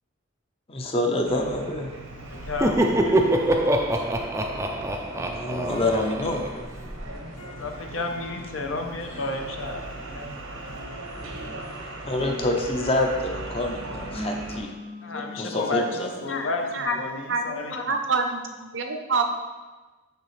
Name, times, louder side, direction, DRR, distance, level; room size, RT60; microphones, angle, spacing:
voice 1, 0.7-1.9 5.2-6.7 12.0-14.7 15.4-16.1, left 1 dB, 30° left, 3 dB, 0.6 m, -27 dB
sound 1, 1.2-14.6, right 1 dB, 80° right, 0.9 m, -39 dB
voice 2, 1.9-3.6 7.6-10.8 15.0-17.9, left 3 dB, 70° left, 4 dB, 0.7 m, -32 dB
Laughter, 2.3-7.0, right 1 dB, 15° right, 0.3 m, -25 dB
sound 2, 3.0-9.4 9.8-16.8, left 1 dB, 85° left, 1.1 m, -43 dB
voice 3, 17.3-19.2, right 4 dB, 60° right, 5 dB, 0.6 m, -27 dB
6.7 x 5.6 x 3.2 m, 1.2 s
head